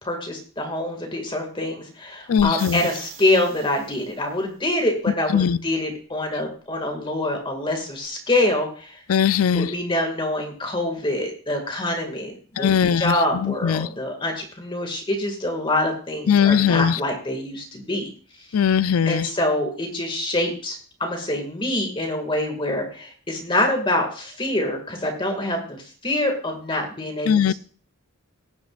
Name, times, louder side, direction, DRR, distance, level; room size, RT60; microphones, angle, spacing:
voice 1, 0.0-9.0 9.5-18.1 19.1-27.5, left 1 dB, 25° left, 2.0 m, -25 dB
voice 2, 2.3-2.8 5.3-5.6 9.1-9.7 12.6-13.1 13.4-13.9 16.3-16.9 18.5-19.3 27.3-27.5, left 7 dB, 90° left, 0.5 m, -19 dB
sound 1, 2.4-4.2 8.0-8.1, right 5 dB, 75° right, 4.6 m, -40 dB
18.5 x 9.5 x 2.4 m
head